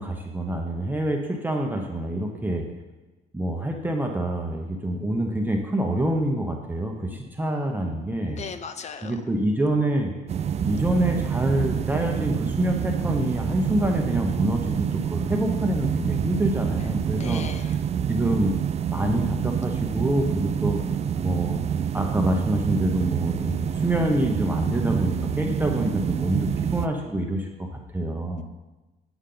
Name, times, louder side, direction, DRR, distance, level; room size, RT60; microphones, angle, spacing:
voice 1, 0.0-2.6 3.3-8.4 9.0-10.2 10.6-17.4 18.1-18.5 18.9-20.8 21.2-21.6 21.9-27.7 27.9-28.4, right 1 dB, 10° right, 1 dB, 0.8 m, -26 dB
voice 2, 8.3-9.2 16.8-17.8 28.4-28.5, left 6 dB, 40° left, 11 dB, 0.6 m, -38 dB
sound 1, 10.3-26.9, right 8 dB, 40° right, 0.4 m, -27 dB
8.5 x 7.9 x 3.8 m, 1.1 s
cardioid pair, 110°, 17 cm